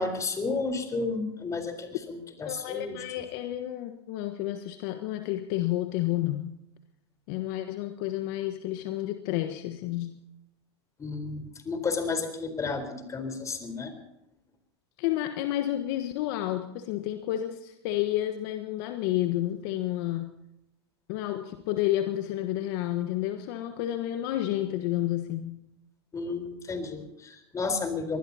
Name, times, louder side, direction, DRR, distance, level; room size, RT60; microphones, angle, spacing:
voice 1, 0.0-3.1 11.0-13.9 26.1-28.2, left 4 dB, 20° left, 7 dB, 4.2 m, -32 dB
voice 2, 2.4-6.6 7.3-10.2 15.0-20.3 21.1-25.6, left 14 dB, 55° left, 7 dB, 1.4 m, -30 dB
24.5 x 20.0 x 2.9 m, 0.86 s
hypercardioid pair, 100°, 14 cm